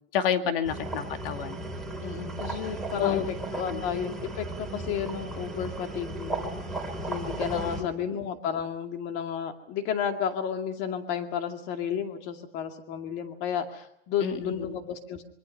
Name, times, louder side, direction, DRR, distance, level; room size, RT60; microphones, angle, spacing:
voice 1, 0.1-1.6 3.0-3.3 3.7-3.8 7.5-7.9 14.2-14.7, left 8 dB, 70° left, 7 dB, 2.5 m, -29 dB
sound 1, 0.6-7.8, right 2 dB, ahead, 3.1 m, -35 dB
voice 2, 2.0-6.6 7.0-15.2, left 8 dB, 35° left, 6 dB, 2.3 m, -32 dB
25.5 x 23.5 x 5.6 m, 0.78 s
supercardioid pair, 170°, 29 cm